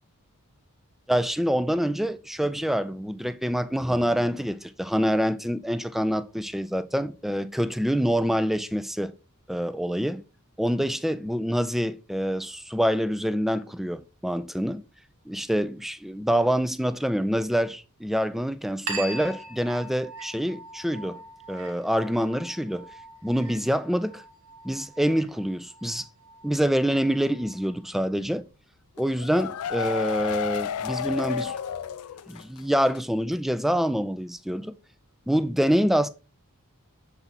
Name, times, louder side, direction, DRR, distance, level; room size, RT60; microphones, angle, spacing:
voice 1, 1.1-9.1 9.5-10.2 10.6-14.8 15.3-21.2 21.5-22.9 23.2-24.2 24.6-26.1 26.4-28.4 29.0-31.5 32.3-34.7 35.3-36.1, equal, ahead, 0.3 m, -26 dB
sound 1, 18.9-27.9, right 3 dB, 85° right, 1.5 m, -42 dB
sound 2, 29.0-32.6 32.9-33.0 33.3-33.4, left 7 dB, 80° left, 0.4 m, -31 dB
7.1 x 4.1 x 4.1 m
head